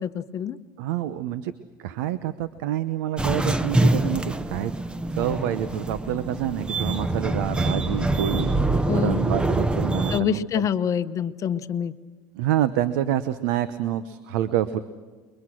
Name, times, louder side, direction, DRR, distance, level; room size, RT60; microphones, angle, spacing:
voice 1, 0.0-0.6 8.9-9.2 10.1-11.9, left 9 dB, 30° left, 10 dB, 0.9 m, -26 dB
voice 2, 0.8-1.5 1.8-4.7 5.1-8.5 8.9-10.7 12.4-14.8, right 12 dB, 85° right, 14 dB, 0.9 m, -27 dB
sound 1, 3.2-10.2, right 2 dB, 10° right, 0.8 m, -25 dB
29.0 x 22.5 x 6.4 m, 1.5 s
supercardioid pair, 135°, 10 cm